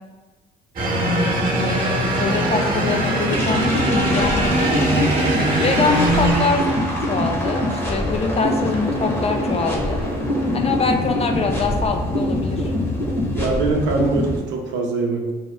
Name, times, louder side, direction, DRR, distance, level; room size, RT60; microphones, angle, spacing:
sound 1, 0.8-7.1, right 1 dB, 45° right, 1.0 m, -21 dB
voice 1, 1.6-5.1 5.6-6.6 7.1-10.0 10.5-12.7, left 4 dB, 30° left, 4 dB, 0.4 m, -24 dB
sound 2, 3.3-14.4, left 1 dB, 10° left, 0.9 m, -24 dB
voice 2, 13.3-15.3, right 3 dB, 65° right, 0 dB, 0.7 m, -23 dB
2.8 x 2.0 x 3.4 m, 1.2 s
hypercardioid pair, 60°, 20 cm